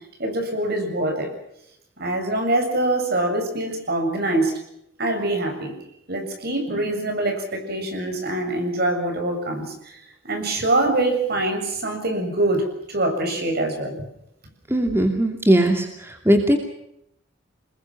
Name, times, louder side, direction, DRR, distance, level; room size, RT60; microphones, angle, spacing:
voice 1, 0.2-1.3 2.0-4.5 5.0-5.7 6.1-10.0 10.2-14.0, right 2 dB, 55° right, 5 dB, 7.3 m, -24 dB
voice 2, 14.7-15.9 16.3-16.6, right 1 dB, 15° right, 4 dB, 2.5 m, -18 dB
29.0 x 21.0 x 5.9 m, 0.77 s
head